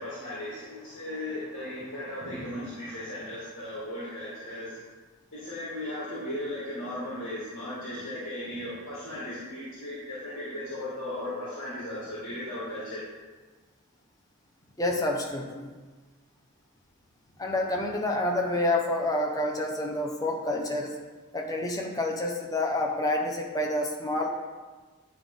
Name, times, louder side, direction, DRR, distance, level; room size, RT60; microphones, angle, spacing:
voice 1, 0.0-4.8 5.3-13.0, left 1 dB, 55° left, -9 dB, 1.9 m, -36 dB
voice 2, 14.8-15.7 17.4-20.9 21.3-24.3, left 1 dB, 15° left, 0 dB, 0.8 m, -28 dB
10.0 x 3.8 x 3.6 m, 1.3 s
head